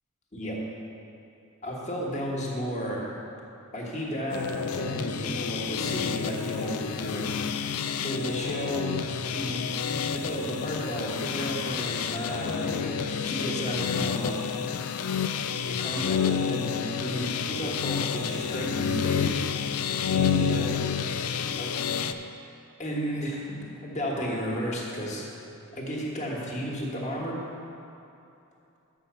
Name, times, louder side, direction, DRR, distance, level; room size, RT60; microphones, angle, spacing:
voice 1, 1.6-3.0 3.7-7.3 8.0-8.9 9.2-9.7 10.1-14.4 15.7-19.4 20.1-20.8 21.2-21.7 22.8-23.5 23.8-25.3 25.7-27.4, equal, 35° left, -3 dB, 1.4 m, -33 dB
sound 1, 4.3-22.1, left 7 dB, 90° left, 0.4 m, -29 dB
7.0 x 5.9 x 6.8 m, 2.8 s
head